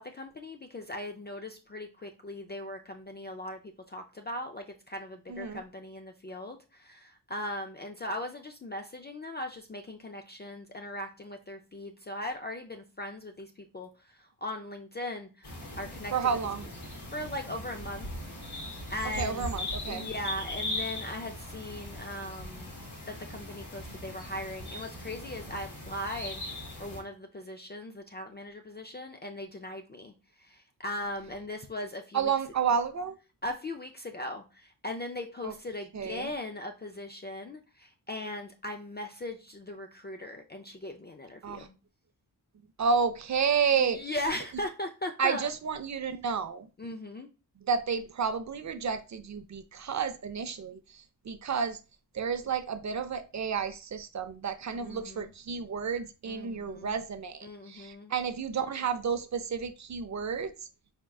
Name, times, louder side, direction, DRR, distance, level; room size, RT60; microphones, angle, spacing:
voice 1, 0.0-16.1 17.1-18.1 18.9-19.5 19.9-22.7 23.1-32.3 33.4-41.8 43.8-45.5 46.8-47.3 54.7-55.3 56.2-56.9 57.4-58.1, left 1 dB, 25° left, 0.4 m, -39 dB
voice 2, 5.3-5.6 16.1-16.7 19.2-20.1 32.1-33.2 35.4-35.5 35.9-36.3 41.4-41.7 42.8-44.1 45.2-46.7 47.7-51.8 52.1-60.5, right 6 dB, 45° right, 0.5 m, -31 dB
sound 1, 15.4-27.0, left 1 dB, 70° left, 1.8 m, -39 dB
4.4 x 3.6 x 2.3 m
wide cardioid pair, 80°, 41 cm